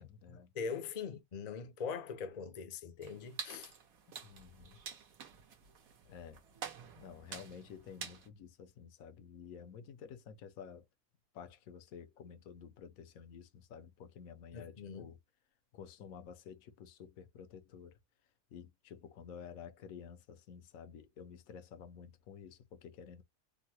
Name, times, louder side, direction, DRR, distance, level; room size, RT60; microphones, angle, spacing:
voice 1, 0.0-0.5 4.2-4.8 6.1-6.4 6.9-10.9 11.3-15.2 15.7-17.9 18.5-23.2, left 7 dB, 80° left, 1.1 m, -51 dB
voice 2, 0.5-3.7 14.5-15.1, left 5 dB, 50° left, 0.5 m, -42 dB
sound 1, 3.0-8.3, right 6 dB, 80° right, 1.5 m, -48 dB
3.7 x 2.0 x 2.8 m
omnidirectional pair, 1.5 m